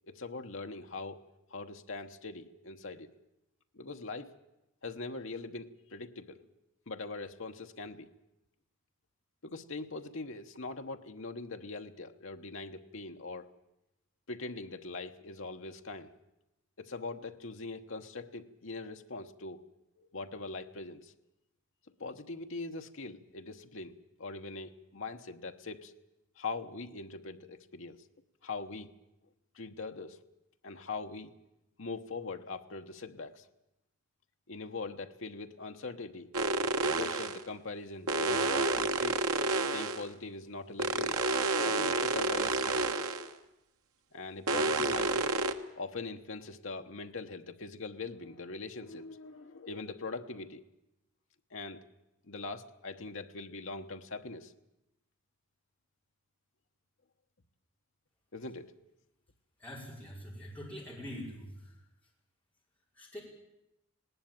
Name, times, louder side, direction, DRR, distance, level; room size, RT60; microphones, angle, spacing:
voice 1, 0.1-1.2 1.5-3.1 3.8-4.3 4.8-6.4 6.9-8.1 9.4-13.5 14.3-16.1 16.8-19.6 20.0-21.1 22.0-23.9 24.2-25.9 26.4-28.0 28.4-28.9 29.6-30.2 30.6-31.3 31.8-33.4 34.5-36.3 37.0-39.2 39.7-41.2 41.6-42.9 44.1-45.3 45.8-50.6 51.5-51.8 52.3-54.5 58.3-58.7, left 3 dB, 65° left, 5 dB, 1.1 m, -42 dB
sound 1, 36.3-37.4 38.1-40.1 40.8-43.3 44.5-45.5, right 3 dB, 90° right, 1.4 m, -30 dB
voice 2, 59.6-61.7 62.9-63.2, equal, 5° left, -4 dB, 5.0 m, -44 dB
19.5 x 18.5 x 9.0 m, 0.90 s
head